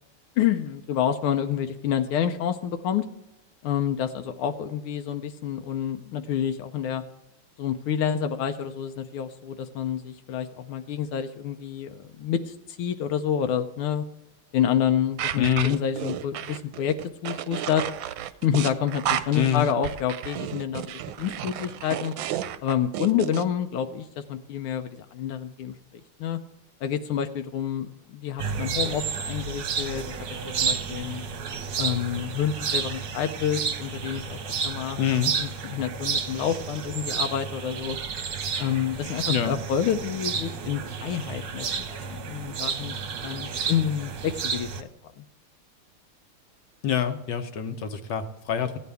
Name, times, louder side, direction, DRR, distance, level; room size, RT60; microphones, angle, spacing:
voice 1, 0.4-3.0 3.6-7.0 7.6-14.0 14.5-17.0 17.2-17.9 18.4-20.9 21.2-22.1 22.6-25.8 26.2-26.4 26.8-30.0 30.6-31.2 31.8-35.0 35.4-38.0 38.6-42.9 43.2-44.9 45.2-45.3, left 9 dB, 85° left, 6 dB, 1.5 m, -28 dB
sound 1, 15.2-23.4, right 11 dB, 75° right, 1.3 m, -32 dB
voice 2, 15.4-15.8 19.3-19.7 35.0-35.3 39.3-39.6 46.8-48.8, left 9 dB, 65° left, 8 dB, 1.3 m, -25 dB
sound 2, 28.4-44.8, right 6 dB, 60° right, 1.2 m, -31 dB
15.5 x 9.4 x 3.4 m, 0.90 s
omnidirectional pair, 2.3 m